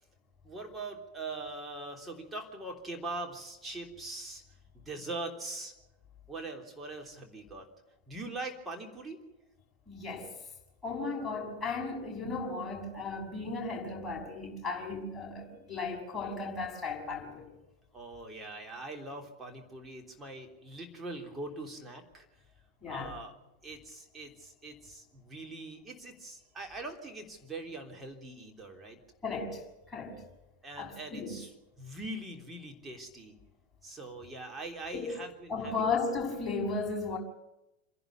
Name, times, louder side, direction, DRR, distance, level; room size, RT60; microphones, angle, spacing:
voice 1, 0.4-4.4 4.7-5.7 6.3-7.7 8.1-9.2 17.9-22.3 22.9-23.3 23.6-29.0 30.6-31.5 31.8-33.4 33.8-35.9, right 2 dB, 15° right, 3.4 m, -42 dB
voice 2, 9.9-10.3 10.8-17.5 22.8-23.1 29.2-29.6 29.9-30.2 30.8-31.4 34.9-35.1 35.5-37.2, left 4 dB, 15° left, 6.2 m, -35 dB
27.5 x 11.0 x 9.3 m
figure-of-eight pair, 90°, 0 cm